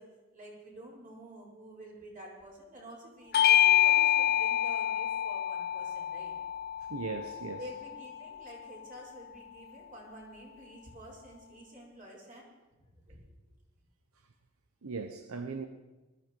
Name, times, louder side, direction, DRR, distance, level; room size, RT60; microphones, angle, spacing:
voice 1, 0.0-6.3 7.6-12.5 12.8-13.2, right 1 dB, 40° right, 5.3 m, -49 dB
Bell / Doorbell, 3.3-8.2, left 11 dB, 45° left, 0.5 m, -27 dB
voice 2, 6.9-7.6 14.8-15.7, right 4 dB, 80° right, 0.9 m, -38 dB
20.0 x 14.0 x 4.6 m
head